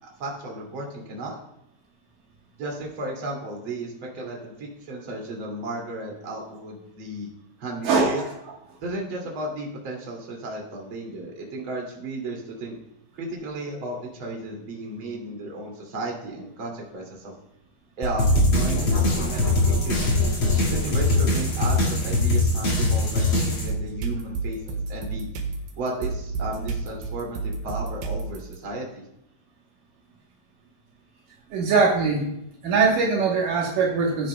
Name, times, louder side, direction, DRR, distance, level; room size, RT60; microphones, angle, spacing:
voice 1, 0.0-1.4 2.6-7.3 7.6-8.2 8.8-12.8 13.1-17.3 18.0-20.0 20.7-25.5 25.8-29.1, right 2 dB, 35° right, -1 dB, 2.2 m, -34 dB
voice 2, 7.8-8.3 31.5-32.3 32.6-34.3, right 4 dB, 85° right, -2 dB, 1.8 m, -21 dB
sound 1, 18.0-18.9 19.4-28.6, right 4 dB, 65° right, 2.5 m, -32 dB
sound 2, 18.2-23.7, left 2 dB, 50° left, 1.4 m, -22 dB
16.5 x 10.0 x 2.2 m, 0.81 s
omnidirectional pair, 5.7 m